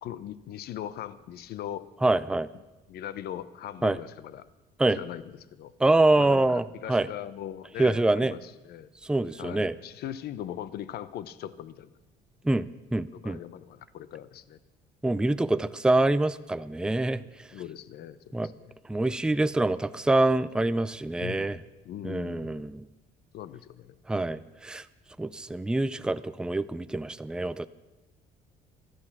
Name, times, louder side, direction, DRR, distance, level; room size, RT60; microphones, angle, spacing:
voice 1, 0.0-1.9 2.9-4.5 4.9-5.7 6.2-8.9 9.4-11.9 13.1-14.6 17.5-18.7 21.2-22.5 23.3-24.0, left 11 dB, 70° left, 15 dB, 0.9 m, -40 dB
voice 2, 2.0-2.5 3.8-4.0 4.8-5.0 5.8-7.1 7.8-8.3 9.0-9.7 12.4-13.4 15.0-17.5 18.3-18.5 18.9-21.6 22.0-22.8 24.1-24.8 25.2-27.7, right 2 dB, 5° right, 14 dB, 0.4 m, -25 dB
16.0 x 12.5 x 6.0 m, 1.1 s
cardioid pair, 110°, 17 cm